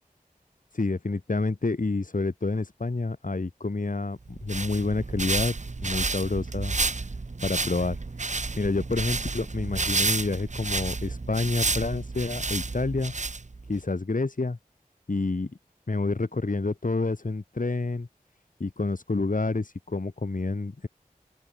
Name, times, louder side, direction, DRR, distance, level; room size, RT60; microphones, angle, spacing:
voice 1, 0.7-5.5 5.8-6.8 7.4-8.0 8.6-13.1 13.7-14.6 15.1-15.5 15.9-18.1 18.6-20.9, left 3 dB, 65° left, 1.9 m, -28 dB
sound 1, 4.3-13.8, right 3 dB, 55° right, 0.9 m, -30 dB
open air
wide cardioid pair, 40°, 15 cm